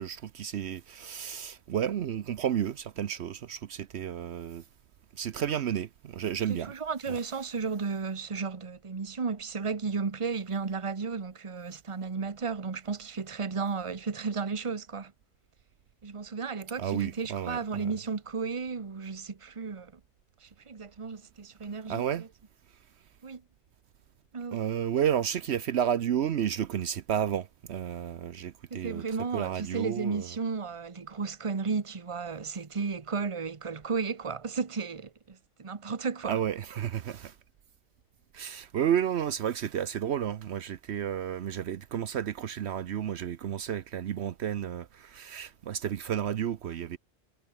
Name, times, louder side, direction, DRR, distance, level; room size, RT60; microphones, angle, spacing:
voice 1, 0.0-4.6 5.1-6.7 7.1-7.2 16.8-17.9 21.9-22.3 24.5-29.0 29.3-30.3 36.2-37.4 38.3-47.0, right 9 dB, 70° right, 1.0 m, -31 dB
voice 2, 6.5-15.1 16.0-19.9 20.4-22.3 23.2-23.4 24.3-24.6 28.7-36.4, right 5 dB, 30° right, 1.1 m, -34 dB
omnidirectional pair, 1.2 m